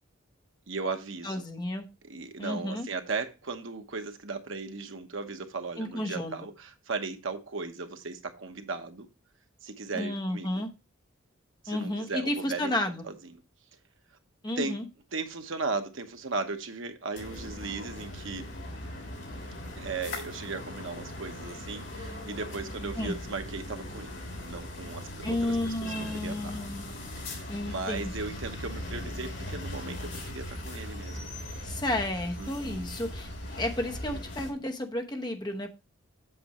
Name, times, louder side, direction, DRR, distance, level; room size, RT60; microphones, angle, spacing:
voice 1, 0.7-1.4 2.0-9.1 9.6-10.6 11.6-12.7 13.0-13.2 14.6-14.8 15.1-18.4 19.8-25.9 26.2-26.5 27.2-31.3 32.4-32.9, right 4 dB, 70° right, 1.0 m, -37 dB
voice 2, 1.2-1.9 2.4-2.9 5.8-6.3 9.9-10.7 11.7-13.0 14.4-14.8 23.0-23.2 25.2-26.9 27.5-28.1 31.6-33.3 33.6-35.7, left 1 dB, 20° left, 1.0 m, -32 dB
sound 1, 17.1-34.5, left 1 dB, 55° left, 3.4 m, -39 dB
7.8 x 7.6 x 3.0 m
head